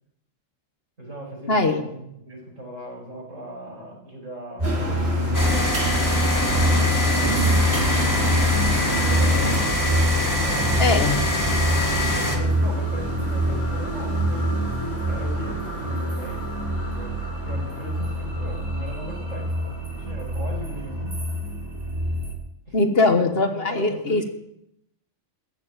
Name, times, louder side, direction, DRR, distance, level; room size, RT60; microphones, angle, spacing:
voice 1, 1.0-5.8 6.3-7.2 7.5-8.3 8.9-9.2 10.4-11.4 12.1-21.2 22.7-24.3, right 1 dB, 75° right, -1 dB, 5.7 m, -39 dB
voice 2, 1.5-1.8 10.8-11.1 22.7-24.2, left 3 dB, 50° left, 7 dB, 1.5 m, -21 dB
sound 1, 4.6-22.3, equal, 30° right, 3.4 m, -25 dB
sound 2, 4.6-9.7, right 3 dB, 55° right, 2.7 m, -29 dB
sound 3, 5.3-12.4, left 2 dB, 15° left, 2.1 m, -24 dB
14.5 x 7.6 x 9.0 m, 0.79 s
omnidirectional pair, 1.3 m